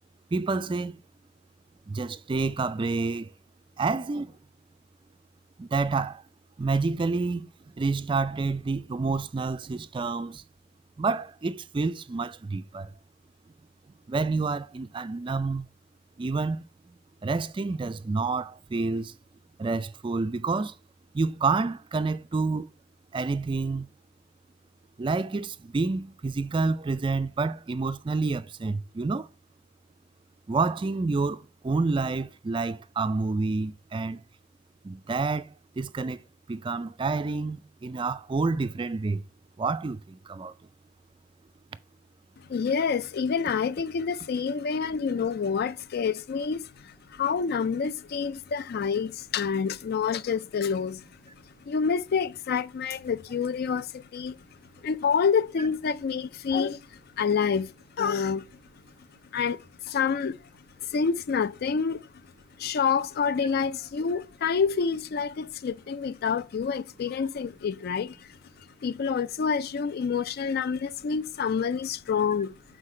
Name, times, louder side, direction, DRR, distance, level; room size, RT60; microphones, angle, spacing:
voice 1, 0.3-1.0 1.9-3.3 3.8-4.3 5.6-6.2 6.6-7.5 7.8-10.4 11.0-12.9 14.1-15.7 16.2-16.6 17.2-19.1 19.6-20.7 21.1-22.7 23.1-23.9 25.0-29.3 30.5-34.2 34.8-35.5 35.8-36.2 36.5-39.2 39.6-40.5, right 3 dB, 25° right, 0.3 m, -28 dB
voice 2, 42.5-51.1 51.7-54.4 54.8-58.5 59.3-60.4 60.8-62.1 62.6-68.3 68.8-72.5, left 6 dB, 55° left, 0.4 m, -28 dB
6.6 x 4.4 x 4.3 m
head